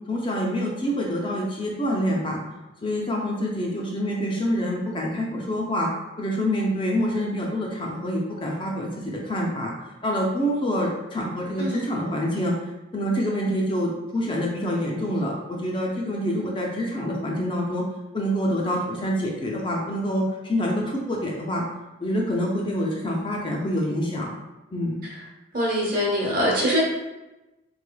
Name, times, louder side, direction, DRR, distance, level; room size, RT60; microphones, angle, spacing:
voice 1, 0.1-2.4 2.8-5.9 6.2-9.7 10.0-12.5 12.9-17.8 18.1-21.6 22.0-24.3 24.7-25.0, equal, 25° left, -1 dB, 0.4 m, -26 dB
voice 2, 25.5-26.8, equal, 45° right, -4 dB, 0.9 m, -23 dB
3.7 x 3.1 x 2.2 m, 1.0 s
head